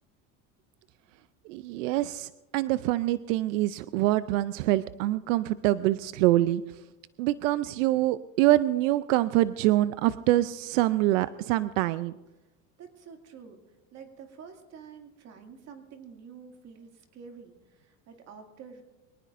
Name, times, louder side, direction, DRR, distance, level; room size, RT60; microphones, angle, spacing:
voice 1, 1.5-6.6 7.2-12.1, right 16 dB, 90° right, 15 dB, 0.5 m, -25 dB
voice 2, 12.8-13.6 13.9-18.8, right 6 dB, 45° right, 4 dB, 2.3 m, -48 dB
24.0 x 18.5 x 2.6 m, 1.1 s
supercardioid pair, 135°, 37 cm